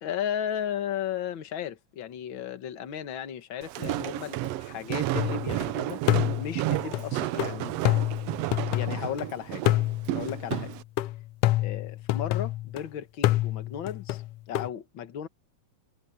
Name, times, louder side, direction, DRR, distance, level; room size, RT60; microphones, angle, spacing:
voice 1, 0.0-6.0 6.4-7.7 8.7-9.6 10.1-10.7 11.6-14.2 14.5-15.3, left 9 dB, 50° left, 1.8 m, -35 dB
Walk footsteps, 3.6-10.8, right 16 dB, 75° right, 1.5 m, -32 dB
sound 1, 5.2-5.7 6.1-9.2 9.7-12.8 13.2-14.7, left 15 dB, 85° left, 1.3 m, -28 dB
omnidirectional pair, 3.4 m